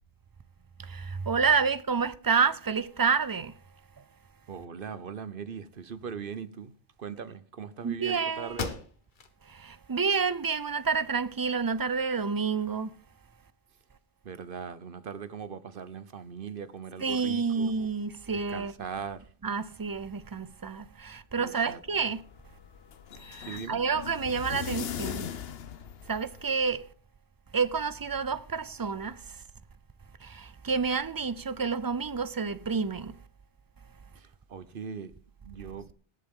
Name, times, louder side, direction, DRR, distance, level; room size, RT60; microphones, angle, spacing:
voice 1, 0.8-3.6 7.8-8.6 9.4-12.9 17.0-18.7 19.4-22.2 23.1-25.3 26.1-26.9 27.5-29.4 30.2-33.2, right 5 dB, 30° right, 0.4 m, -29 dB
voice 2, 4.5-6.7 7.0-8.8 14.2-17.8 18.3-19.2 21.4-21.8 23.5-23.8 34.1-35.1 35.4-35.8, right 6 dB, 55° right, 1.1 m, -40 dB
sound 1, 8.5-9.4 9.8-9.9 10.5-11.4, left 4 dB, 50° left, 1.3 m, -39 dB
sound 2, 21.6-26.7, left 9 dB, 70° left, 0.9 m, -40 dB
19.0 x 8.3 x 3.7 m
omnidirectional pair, 1.1 m